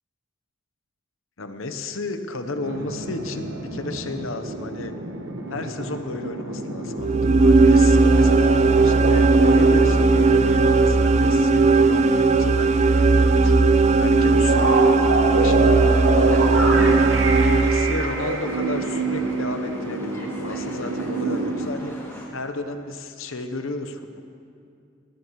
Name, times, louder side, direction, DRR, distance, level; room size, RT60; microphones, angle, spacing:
voice 1, 1.4-4.9 5.5-16.0 16.5-17.0 17.5-21.9 22.3-24.2, left 2 dB, 80° left, 7 dB, 1.0 m, -33 dB
sound 1, 2.6-12.8 13.1-13.2 14.1-21.7, right 2 dB, 65° right, 1.4 m, -28 dB
sound 2, 7.0-18.3, right 3 dB, 35° right, 0.4 m, -17 dB
sound 3, 15.8-22.3, left 1 dB, 15° left, 2.5 m, -39 dB
19.5 x 19.0 x 3.2 m, 2.5 s
head